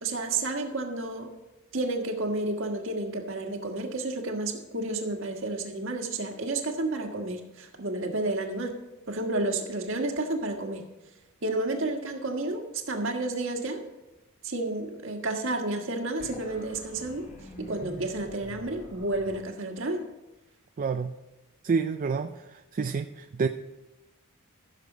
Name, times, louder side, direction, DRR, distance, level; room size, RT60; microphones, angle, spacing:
voice 1, 0.0-1.3 1.7-8.8 9.1-10.8 11.4-13.8 14.4-17.2 17.6-20.0, right 2 dB, 65° right, 3 dB, 1.5 m, -31 dB
sound 1, 16.2-19.4, equal, 35° left, 1.7 m, -46 dB
voice 2, 20.8-21.1 21.6-23.5, right 5 dB, 40° right, 8 dB, 0.3 m, -29 dB
15.0 x 6.7 x 5.0 m, 1.0 s
head